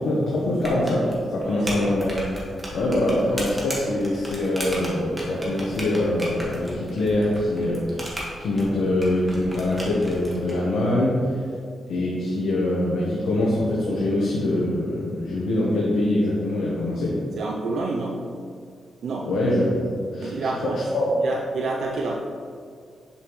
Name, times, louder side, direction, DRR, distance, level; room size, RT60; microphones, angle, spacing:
voice 1, 0.0-2.1 2.7-11.3 11.9-17.2 19.2-21.0, left 1 dB, 90° left, -5 dB, 1.0 m, -24 dB
sound 1, 0.6-10.5, equal, 15° right, 1.6 m, -36 dB
voice 2, 1.4-1.9 17.4-18.3 19.0-19.3 20.2-20.8 21.2-22.2, right 3 dB, 75° right, -1 dB, 0.5 m, -29 dB
6.9 x 5.4 x 3.1 m, 2.2 s
cardioid pair, 100°, 0 cm